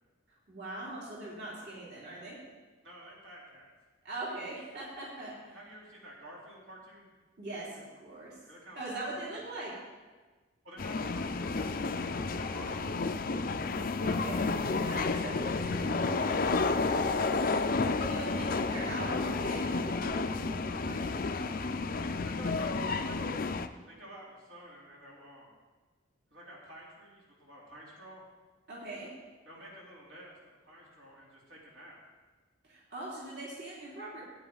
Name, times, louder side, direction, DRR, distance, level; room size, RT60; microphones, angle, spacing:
voice 1, 0.5-2.4 4.0-5.6 7.4-8.3 8.7-9.8 14.0-14.5 14.8-16.4 17.9-21.5 22.0-22.3 28.7-29.1 32.6-34.2, right 2 dB, 55° right, -6 dB, 3.2 m, -42 dB
voice 2, 2.8-3.7 5.3-7.1 8.5-9.1 10.6-11.9 12.3-13.3 16.6-16.8 22.2-23.5 23.9-25.5 26.3-28.2 29.4-32.0, equal, 70° right, -5 dB, 3.4 m, -50 dB
sound 1, 10.8-23.7, left 3 dB, 45° left, 0.5 m, -31 dB
16.5 x 9.5 x 4.0 m, 1.3 s
head